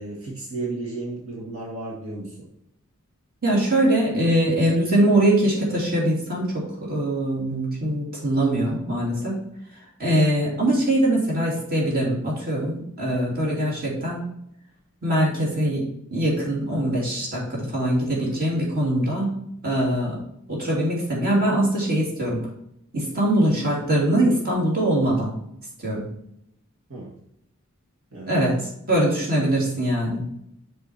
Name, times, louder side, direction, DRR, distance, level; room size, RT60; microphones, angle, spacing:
voice 1, 0.0-2.5 26.9-27.2 28.1-28.3, right 2 dB, 80° right, -4 dB, 1.9 m, -33 dB
voice 2, 3.4-9.4 10.0-14.2 15.0-19.4 19.6-20.2 20.5-22.4 22.9-25.3 25.8-26.1 28.3-28.6 28.9-30.2, right 1 dB, 45° right, -4 dB, 3.0 m, -22 dB
6.8 x 4.9 x 4.5 m, 0.76 s
head